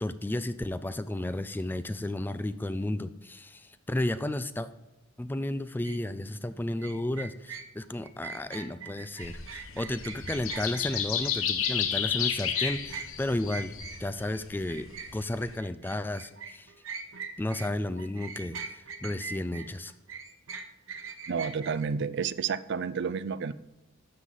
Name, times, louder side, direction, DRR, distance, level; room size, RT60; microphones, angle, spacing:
voice 1, 0.0-4.7 5.2-16.7 17.4-19.9, left 1 dB, 10° left, 13 dB, 0.3 m, -33 dB
sound 1, 5.8-6.0 6.8-14.3 14.7-17.7 18.0-21.9, right 5 dB, 75° right, 0.9 m, -41 dB
sound 2, 9.2-15.6, left 8 dB, 90° left, 1.0 m, -32 dB
voice 2, 21.3-23.5, right 6 dB, 60° right, 17 dB, 0.4 m, -30 dB
12.0 x 7.5 x 4.0 m, 0.95 s
head